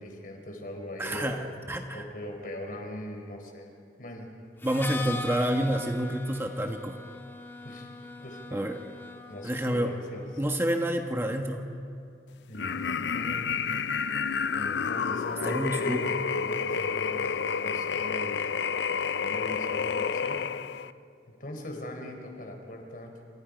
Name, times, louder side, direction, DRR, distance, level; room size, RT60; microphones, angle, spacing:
voice 1, 0.0-1.4 1.9-3.7 4.0-4.3 5.0-5.1 7.6-7.9 8.2-8.6 9.3-10.3 12.5-13.5 14.5-18.5 18.9-20.5 21.3-23.1, left 1 dB, 50° left, 3 dB, 4.2 m, -40 dB
voice 2, 1.0-2.0 4.6-7.0 8.5-8.7 9.4-9.9 10.4-11.7 15.4-16.1, right 1 dB, 15° right, 3 dB, 1.2 m, -28 dB
Harmonica, 4.6-10.3, left 2 dB, 15° left, 1.7 m, -40 dB
sound 1, 12.5-20.9, left 6 dB, 80° left, 0.5 m, -30 dB
29.0 x 27.0 x 5.1 m, 2.5 s
head